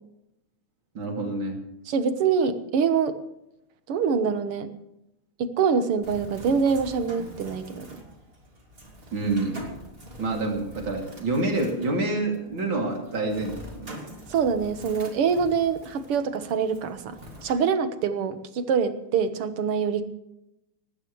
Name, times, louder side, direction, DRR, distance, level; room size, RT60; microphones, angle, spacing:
voice 1, 1.0-1.6 9.1-9.6 10.2-14.0, right 2 dB, 65° right, 1 dB, 3.5 m, -27 dB
voice 2, 1.9-3.2 3.9-4.7 5.4-8.0 14.3-20.0, right 6 dB, 90° right, 9 dB, 2.2 m, -25 dB
Bird, 6.0-17.5, equal, 25° right, 2.8 m, -45 dB
19.0 x 16.0 x 3.2 m, 0.85 s
omnidirectional pair, 2.4 m